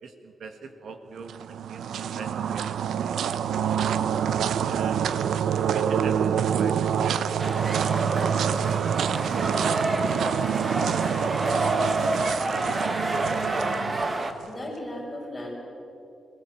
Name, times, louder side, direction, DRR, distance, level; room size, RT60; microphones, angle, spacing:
voice 1, 0.0-3.8 4.5-5.0 5.7-7.8, right 5 dB, 65° right, 7 dB, 1.7 m, -43 dB
sound 1, 1.2-14.5, right 8 dB, 85° right, 0.7 m, -27 dB
sound 2, 7.4-14.3, right 2 dB, 25° right, 1.2 m, -28 dB
voice 2, 13.4-13.9 14.5-15.5, left 1 dB, 5° left, -4 dB, 5.8 m, -37 dB
21.0 x 18.5 x 7.7 m, 2.7 s
wide cardioid pair, 170°, 0 cm